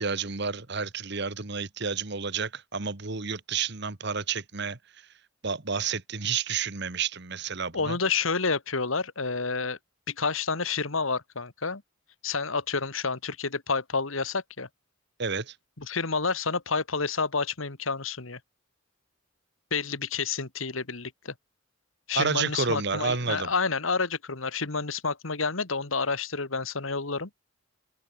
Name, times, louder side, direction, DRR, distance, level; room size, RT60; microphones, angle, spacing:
voice 1, 0.0-4.8 5.4-8.0 15.2-15.6 22.1-23.5, right 5 dB, 55° right, 1.6 m, -30 dB
voice 2, 7.7-9.8 10.1-11.8 12.2-14.7 15.8-18.4 19.7-21.3 22.1-27.3, left 4 dB, 80° left, 2.1 m, -29 dB
head